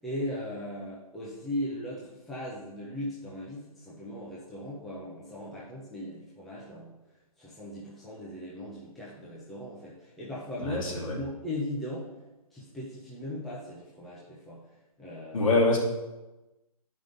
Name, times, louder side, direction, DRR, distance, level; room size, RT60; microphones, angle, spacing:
voice 1, 0.0-6.9 7.4-12.1 12.5-14.6 15.0-15.5, left 1 dB, ahead, -8 dB, 0.7 m, -38 dB
voice 2, 10.6-11.1 15.3-15.8, left 2 dB, 60° left, -4 dB, 3.0 m, -24 dB
11.0 x 5.4 x 3.9 m, 1.0 s
hypercardioid pair, 165°, 20 cm